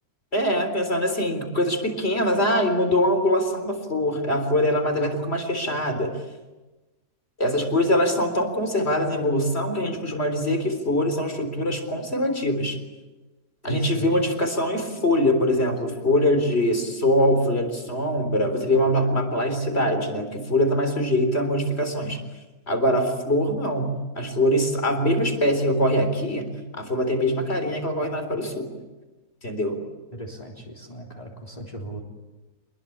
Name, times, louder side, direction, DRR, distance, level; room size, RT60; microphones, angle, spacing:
voice 1, 0.3-6.1 7.4-12.8 13.6-22.2 22.7-28.7 29.4-29.8, left 1 dB, 40° left, 6 dB, 4.1 m, -23 dB
voice 2, 13.6-14.1 30.1-32.0, right 1 dB, 25° left, -1 dB, 3.8 m, -37 dB
27.5 x 21.0 x 8.7 m, 1.1 s
omnidirectional pair, 1.6 m